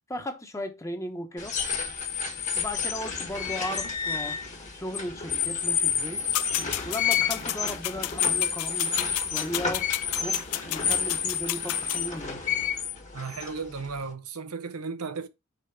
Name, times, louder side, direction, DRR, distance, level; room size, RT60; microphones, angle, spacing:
voice 1, 0.1-1.5 2.5-4.4 4.7-6.2 6.8-9.9 10.2-10.4 10.6-12.4, left 1 dB, 15° left, 1.1 m, -36 dB
sound 1, 1.4-14.1, left 7 dB, 35° left, 1.5 m, -30 dB
sound 2, 6.3-12.0, left 17 dB, 80° left, 0.3 m, -32 dB
voice 2, 13.1-15.3, right 4 dB, 75° right, 0.8 m, -35 dB
5.2 x 4.5 x 5.9 m
head